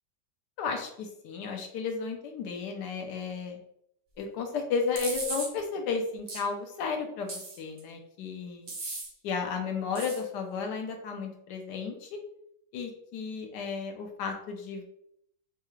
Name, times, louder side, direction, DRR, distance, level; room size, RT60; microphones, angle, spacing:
voice 1, 0.6-3.6 4.2-8.7 9.2-12.2 12.7-14.8, left 5 dB, 85° left, 3 dB, 1.2 m, -33 dB
sound 1, 5.0-5.5 6.3-6.4 7.3-7.8 8.7-9.1 10.0-10.2, right 2 dB, 45° right, 0.7 m, -36 dB
4.6 x 2.3 x 3.1 m, 0.74 s
omnidirectional pair, 1.8 m